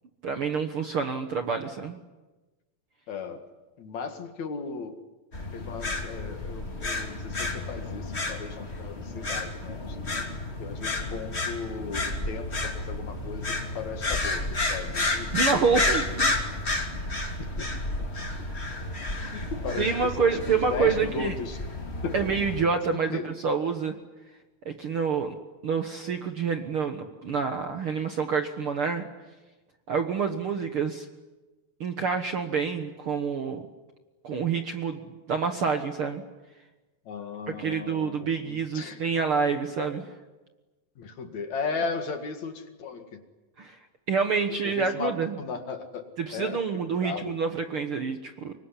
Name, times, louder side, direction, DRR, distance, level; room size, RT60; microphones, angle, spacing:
voice 1, 0.2-2.0 15.3-16.3 18.4-18.5 19.2-19.3 19.8-21.3 22.1-23.9 24.6-25.3 25.6-29.1 29.9-31.1 31.8-33.6 34.2-35.0 35.3-36.2 37.6-40.0 43.6-43.8 44.1-45.4 46.2-48.5, right 5 dB, 55° right, 6 dB, 1.7 m, -27 dB
voice 2, 3.1-3.4 3.8-5.0 5.5-10.0 10.6-15.9 17.4-17.7 18.0-18.1 19.3-21.6 22.0-22.3 23.1-23.3 37.1-39.0 41.0-43.2 44.5-46.1 46.3-47.3, left 5 dB, 60° left, 7 dB, 3.0 m, -36 dB
sound 1, 5.3-22.6, left 2 dB, 20° left, 2.5 m, -31 dB
26.0 x 23.0 x 10.0 m, 1.2 s
omnidirectional pair, 3.9 m